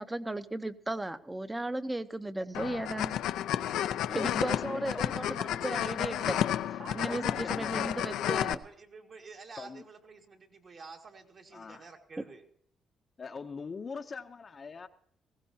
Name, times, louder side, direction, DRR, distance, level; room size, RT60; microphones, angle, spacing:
voice 1, 0.0-3.1 4.1-6.4 6.9-8.6, right 1 dB, 15° right, 12 dB, 0.8 m, -35 dB
sound 1, 2.5-8.5, left 11 dB, 85° left, 0.5 m, -31 dB
voice 2, 4.1-5.4 6.4-6.5 7.1-7.9 9.6-9.8 11.5-11.9 13.2-14.9, left 5 dB, 40° left, 6 dB, 0.7 m, -42 dB
voice 3, 6.8-12.5, right 4 dB, 50° right, 3 dB, 2.1 m, -50 dB
19.5 x 16.0 x 2.8 m, 0.64 s
cardioid pair, 90°, 0 cm